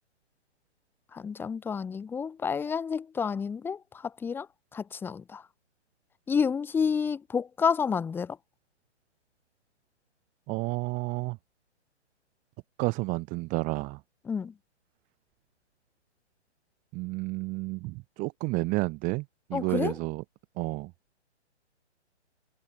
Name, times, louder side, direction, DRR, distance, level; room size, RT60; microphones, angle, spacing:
voice 1, 1.1-4.5 4.7-5.4 6.3-8.4 14.3-14.5 19.5-19.9, left 6 dB, 5° left, 1.1 m, -29 dB
voice 2, 10.5-11.4 12.8-14.0 16.9-20.2 20.6-20.9, right 25 dB, 20° right, 3.1 m, -31 dB
hypercardioid pair, 145°, 35 cm